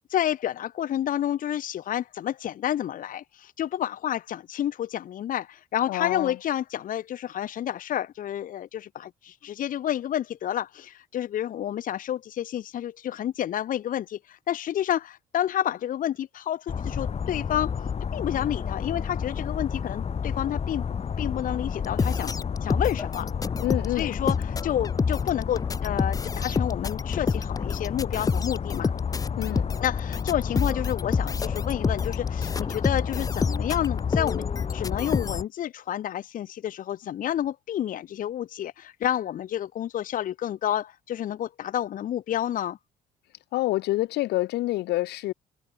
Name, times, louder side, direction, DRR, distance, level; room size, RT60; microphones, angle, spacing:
voice 1, 0.1-17.8 18.1-20.9 21.2-23.3 23.9-28.9 29.8-34.5 34.7-42.8, left 11 dB, 55° left, 1.0 m, -30 dB
voice 2, 5.9-6.3 23.6-24.2 29.4-29.7 43.5-45.3, left 17 dB, 80° left, 3.5 m, -27 dB
sound 1, 16.7-35.4, left 6 dB, 40° left, 5.1 m, -31 dB
sound 2, 21.8-35.4, left 5 dB, 20° left, 0.6 m, -28 dB
cardioid pair, 110°, 17 cm